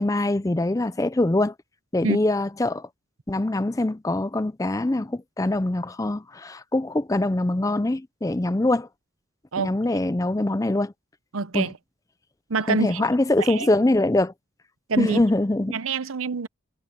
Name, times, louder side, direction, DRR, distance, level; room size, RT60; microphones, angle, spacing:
voice 1, 0.0-1.5 1.9-2.9 3.3-8.9 9.6-10.9 11.5-11.7 12.7-14.3 15.0-15.8, left 2 dB, 15° left, 0.4 m, -23 dB
voice 2, 11.3-11.8 12.5-13.0 13.4-13.7 14.9-15.2 15.7-16.5, right 4 dB, 85° right, 0.8 m, -26 dB
head